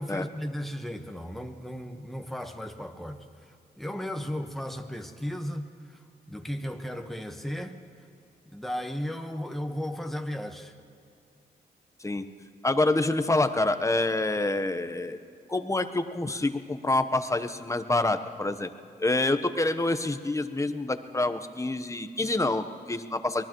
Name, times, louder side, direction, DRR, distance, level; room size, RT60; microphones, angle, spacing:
voice 1, 0.0-6.0 6.3-7.8 8.5-10.7, equal, ahead, 4 dB, 1.2 m, -35 dB
voice 2, 12.6-15.2 15.5-18.7 19.0-23.4, left 2 dB, 15° left, 10 dB, 0.9 m, -27 dB
24.0 x 19.5 x 3.1 m, 2.4 s
cardioid pair, 60°, 18 cm